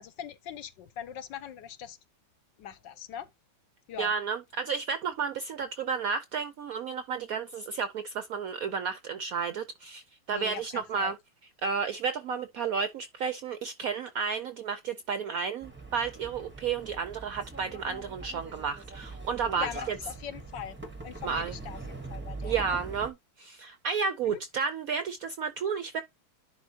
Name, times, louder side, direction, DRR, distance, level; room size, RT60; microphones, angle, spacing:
voice 1, 0.0-2.0 2.6-3.3 3.9-4.1 10.3-11.1 19.5-20.8 21.0-22.7 24.2-24.4, left 9 dB, 70° left, 1.4 m, -41 dB
voice 2, 4.0-11.2 11.6-20.0 21.2-21.5 22.4-26.0, right 6 dB, 75° right, 0.8 m, -32 dB
sound 1, 15.6-23.1, right 3 dB, 10° right, 0.5 m, -42 dB
10.5 x 3.8 x 2.7 m
omnidirectional pair, 2.1 m